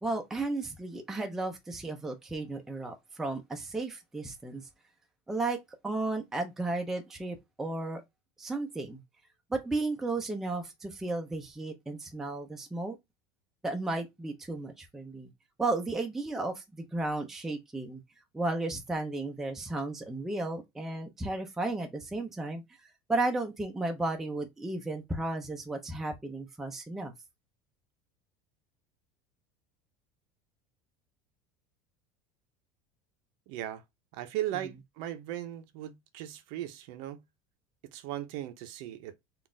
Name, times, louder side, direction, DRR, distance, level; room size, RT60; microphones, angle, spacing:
voice 1, 0.0-4.7 5.3-8.0 8.4-9.0 9.5-13.0 13.6-15.3 15.6-18.0 18.3-27.1, right 2 dB, 5° right, 0.4 m, -34 dB
voice 2, 33.5-33.8 34.1-37.2 37.9-39.2, right 13 dB, 50° right, 0.6 m, -37 dB
3.9 x 2.4 x 3.6 m
cardioid pair, 180°, 11 cm